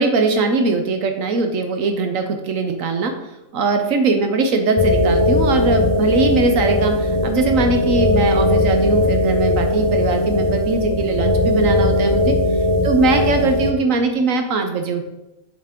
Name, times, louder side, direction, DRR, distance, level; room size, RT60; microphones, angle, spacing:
voice 1, 0.0-3.1 3.5-12.3 12.8-15.0, right 3 dB, 75° right, 5 dB, 1.2 m, -20 dB
sound 1, 4.8-13.7, left 1 dB, 30° left, 0.4 m, -18 dB
7.5 x 6.0 x 3.6 m, 0.92 s
omnidirectional pair, 1.4 m